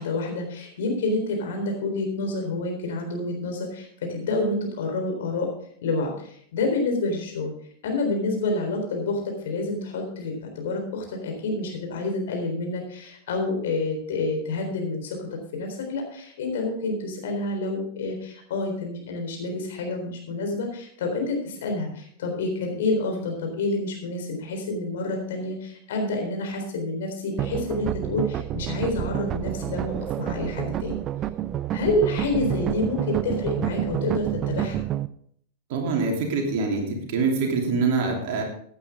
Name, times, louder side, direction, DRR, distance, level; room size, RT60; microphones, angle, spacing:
voice 1, 0.0-5.5 5.8-7.5 7.8-31.0 31.7-34.8, left 2 dB, 60° left, 3 dB, 3.8 m, -28 dB
sound 1, 27.4-35.1, right 12 dB, 30° right, 0.5 m, -29 dB
voice 2, 35.7-38.4, right 4 dB, 50° right, 1 dB, 3.0 m, -25 dB
15.5 x 8.9 x 3.6 m, 0.63 s
figure-of-eight pair, 90°, 0 cm